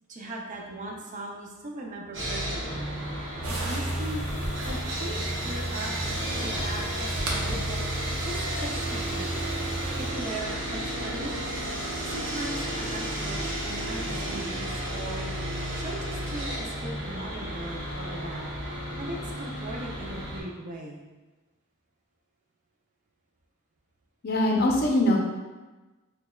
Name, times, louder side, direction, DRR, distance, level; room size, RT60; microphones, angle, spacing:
voice 1, 0.1-2.9 3.5-4.2 4.7-5.9 6.4-7.8 8.2-9.3 10.0-11.3 12.0-15.3 15.7-18.5 19.0-21.0, right 1 dB, 35° right, -1 dB, 0.5 m, -39 dB
Sawing, 2.1-20.4, right 1 dB, 60° right, 1.0 m, -33 dB
sound 1, 3.4-10.1, right 1 dB, 85° right, 0.8 m, -34 dB
voice 2, 24.2-25.2, left 1 dB, 50° left, -1 dB, 0.6 m, -22 dB
6.0 x 2.2 x 2.3 m, 1.2 s
head